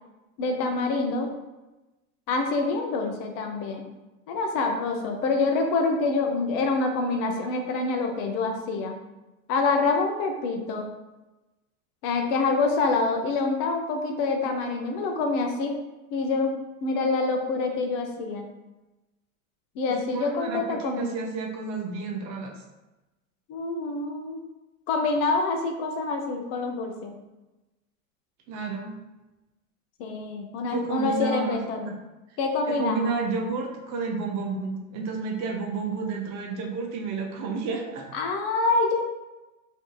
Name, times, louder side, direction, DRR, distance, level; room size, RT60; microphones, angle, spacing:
voice 1, 0.4-1.3 2.3-3.8 4.3-8.9 9.5-10.9 12.0-15.8 16.1-16.5 16.8-18.5 19.8-21.2 23.5-24.4 24.9-27.2 30.0-32.0 32.4-33.1 38.1-39.0, left 3 dB, 50° left, 3 dB, 0.5 m, -26 dB
voice 2, 19.9-22.5 28.5-29.0 30.7-31.6 31.9-32.0 32.7-38.1, right 4 dB, 40° right, 2 dB, 0.5 m, -31 dB
2.6 x 2.6 x 2.2 m, 1.1 s
hypercardioid pair, 90°, 44 cm